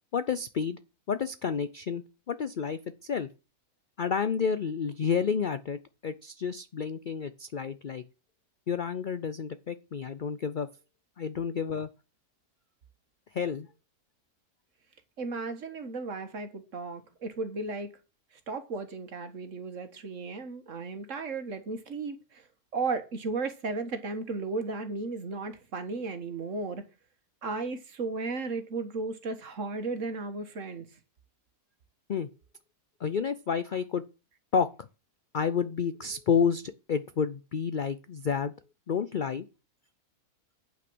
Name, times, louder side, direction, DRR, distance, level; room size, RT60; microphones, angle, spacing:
voice 1, 0.1-0.8 1.1-3.3 4.0-8.0 8.7-10.7 11.2-11.9 13.3-13.7 32.1-32.3 33.0-34.0 34.5-34.9 35.3-38.5 38.9-39.5, left 6 dB, 75° left, 0.4 m, -30 dB
voice 2, 15.2-17.9 18.5-22.5 22.7-26.8 27.4-30.9, right 3 dB, 55° right, 1.7 m, -35 dB
9.1 x 6.0 x 6.1 m
omnidirectional pair, 1.7 m